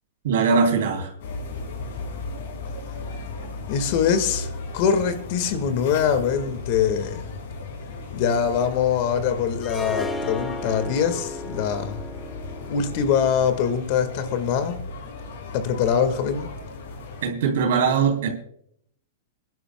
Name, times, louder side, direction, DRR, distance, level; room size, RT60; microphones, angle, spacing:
voice 1, 0.2-1.1 17.2-18.3, right 5 dB, 70° right, 3 dB, 3.6 m, -21 dB
sound 1, 1.2-17.3, left 3 dB, 65° left, 5.8 m, -36 dB
voice 2, 3.7-4.5 4.7-7.2 8.1-12.0 12.7-14.8 15.5-16.5, left 7 dB, 50° left, 10 dB, 1.7 m, -23 dB
Harp, 9.6-14.7, left 2 dB, 10° left, 1.4 m, -35 dB
26.5 x 11.0 x 2.3 m, 0.68 s
hypercardioid pair, 135°, 0 cm